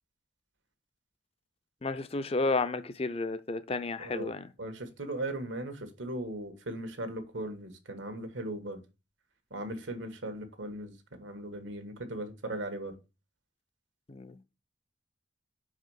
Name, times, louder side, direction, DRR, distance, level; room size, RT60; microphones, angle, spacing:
voice 1, 1.8-4.5 14.1-14.3, left 3 dB, 30° left, 0.5 m, -32 dB
voice 2, 4.0-4.3 4.6-8.8 9.5-13.0, right 1 dB, 80° right, 1.4 m, -38 dB
5.5 x 4.8 x 6.2 m
head